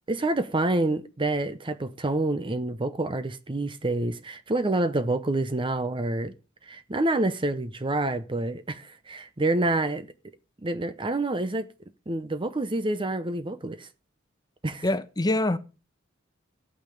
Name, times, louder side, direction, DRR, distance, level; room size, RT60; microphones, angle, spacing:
voice 1, 0.1-6.3 6.7-10.1 10.6-11.7 12.1-13.9 14.6-14.9, right 2 dB, 25° right, 0.7 m, -27 dB
voice 2, 14.8-15.6, left 1 dB, 20° left, 1.0 m, -24 dB
13.5 x 8.8 x 5.1 m
head